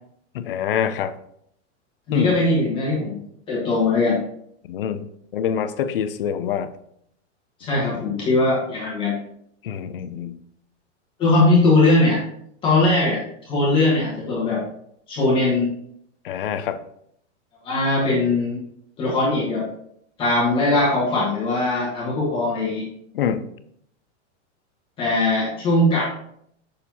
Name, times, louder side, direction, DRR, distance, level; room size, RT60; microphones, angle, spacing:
voice 1, 0.3-1.1 2.1-2.4 4.7-5.0 5.3-6.7 7.8-7.9 9.6-10.4 16.2-16.8 23.1-23.5, left 8 dB, 50° left, 12 dB, 0.5 m, -25 dB
voice 2, 2.1-3.2 3.5-4.2 7.6-9.2 11.2-12.2 12.6-14.6 15.1-15.7 17.6-18.6 19.0-19.6 20.2-22.9 25.0-26.0, left 2 dB, 15° left, -6 dB, 1.4 m, -20 dB
6.9 x 6.5 x 2.8 m, 0.70 s
supercardioid pair, 180°, 36 cm